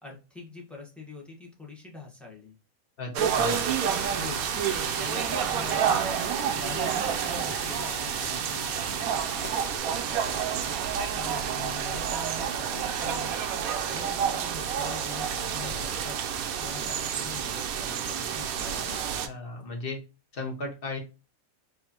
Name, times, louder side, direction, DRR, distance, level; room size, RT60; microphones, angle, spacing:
voice 1, 0.0-2.5 3.4-3.7 4.1-19.2, left 3 dB, ahead, -2 dB, 1.2 m, -44 dB
voice 2, 3.0-3.7 19.2-20.0 20.3-21.0, left 2 dB, 45° left, 2 dB, 1.2 m, -35 dB
sound 1, 3.2-19.3, right 8 dB, 85° right, 1.1 m, -29 dB
sound 2, 3.3-9.8, left 5 dB, 80° left, 1.4 m, -44 dB
4.7 x 3.2 x 2.8 m, 0.30 s
omnidirectional pair, 1.5 m